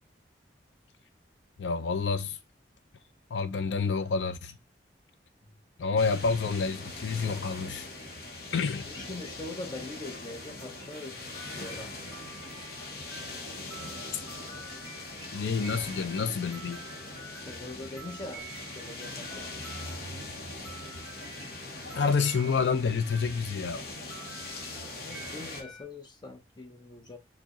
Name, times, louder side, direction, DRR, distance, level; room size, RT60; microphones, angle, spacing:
voice 1, 1.6-2.4 3.3-4.5 5.8-7.9 8.5-8.9 15.3-16.8 21.9-23.8, left 5 dB, 75° left, 0.4 m, -28 dB
voice 2, 5.4-6.1 8.8-11.2 11.5-11.9 17.4-18.5 18.7-19.5 24.9-27.2, left 2 dB, 25° left, 0.6 m, -43 dB
sound 1, 6.0-25.6, left 2 dB, 55° left, 0.8 m, -41 dB
sound 2, 11.3-23.8 24.1-25.8, right 5 dB, 10° right, 2.0 m, -49 dB
4.5 x 2.1 x 2.9 m
head